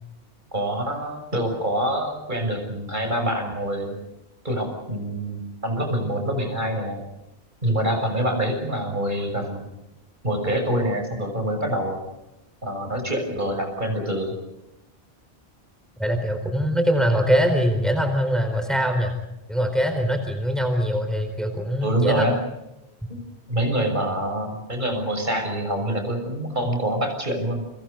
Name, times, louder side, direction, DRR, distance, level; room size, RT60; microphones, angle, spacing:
voice 1, 0.5-4.0 4.4-7.0 7.6-9.7 10.2-12.0 12.6-14.3 21.8-22.4 23.5-27.6, right 1 dB, 50° right, 4 dB, 6.6 m, -25 dB
voice 2, 16.0-19.1 19.5-22.2, equal, ahead, 5 dB, 4.3 m, -22 dB
30.0 x 25.5 x 5.3 m, 0.96 s
omnidirectional pair, 1.1 m